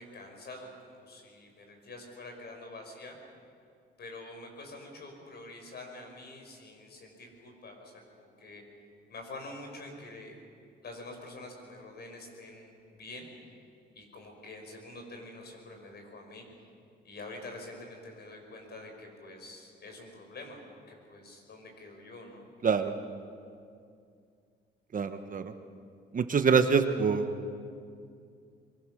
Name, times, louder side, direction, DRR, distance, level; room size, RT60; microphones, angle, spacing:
voice 1, 0.0-3.2 4.0-8.6 9.1-10.4 10.8-13.3 13.9-16.5 17.0-22.5, left 2 dB, 55° left, 3 dB, 6.0 m, -46 dB
voice 2, 22.6-22.9 24.9-25.5 26.1-27.5, right 5 dB, 40° right, 8 dB, 1.3 m, -26 dB
23.5 x 22.5 x 6.5 m, 2.4 s
cardioid pair, 90°, 20 cm